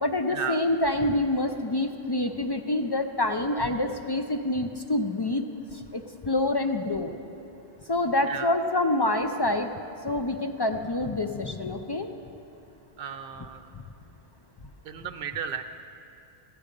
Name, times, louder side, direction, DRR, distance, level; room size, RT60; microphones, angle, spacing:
voice 1, 0.0-5.5 5.7-7.1 7.9-9.7 10.0-12.1, left 2 dB, 40° left, 5 dB, 0.3 m, -27 dB
voice 2, 13.0-13.7 14.8-15.6, right 7 dB, 65° right, 8 dB, 0.7 m, -34 dB
15.0 x 5.2 x 9.6 m, 2.8 s
omnidirectional pair, 1.1 m